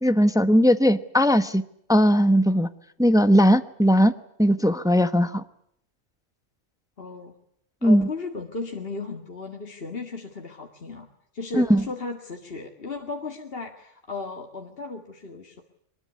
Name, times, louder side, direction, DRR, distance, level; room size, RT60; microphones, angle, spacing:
voice 1, 0.0-1.6 1.9-2.7 3.0-4.1 4.4-5.4 7.8-8.1 11.6-11.8, equal, 5° right, 11 dB, 0.9 m, -18 dB
voice 2, 7.0-7.4 7.8-11.1 11.3-15.6, left 3 dB, 50° left, 3 dB, 2.2 m, -35 dB
23.0 x 21.5 x 9.6 m, 0.72 s
omnidirectional pair, 1.3 m